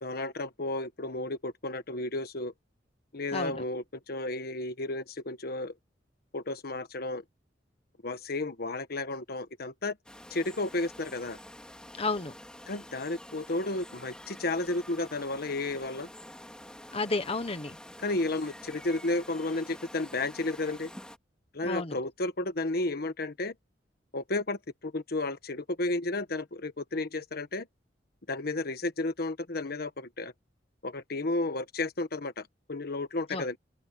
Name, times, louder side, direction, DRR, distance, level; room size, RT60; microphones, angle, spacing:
voice 1, 0.0-2.5 3.1-5.7 6.3-7.2 8.0-10.0 10.3-11.4 12.7-16.1 18.0-20.9 21.5-23.5 24.1-27.7 28.3-30.3 30.8-33.6, left 2 dB, 60° left, 1.4 m, -32 dB
voice 2, 3.3-3.6 12.0-12.3 16.9-17.8 21.6-22.0 33.3-33.5, left 3 dB, 35° left, 1.2 m, -31 dB
sound 1, 10.0-21.2, left 1 dB, 5° left, 3.2 m, -48 dB
open air
head